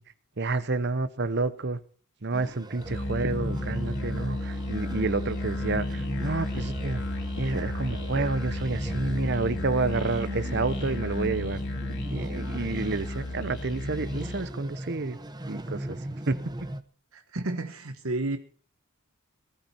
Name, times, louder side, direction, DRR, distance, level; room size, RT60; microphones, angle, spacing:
voice 1, 0.4-1.8 2.2-7.0 7.4-11.6 12.1-15.2 15.5-16.0 16.3-16.4, right 3 dB, 50° right, 0.9 m, -29 dB
sound 1, 2.3-16.8, right 1 dB, 20° right, 0.8 m, -38 dB
Musical instrument, 2.8-14.5, left 2 dB, 55° left, 2.5 m, -33 dB
sound 2, 6.5-6.9 7.3-9.0 9.2-9.8 10.0-10.3 10.6-12.9 13.2-13.7 14.0-14.2 14.6-14.7, left 1 dB, 85° left, 2.6 m, -46 dB
voice 2, 17.1-18.4, right 2 dB, 70° right, 1.2 m, -31 dB
19.0 x 12.0 x 4.4 m
head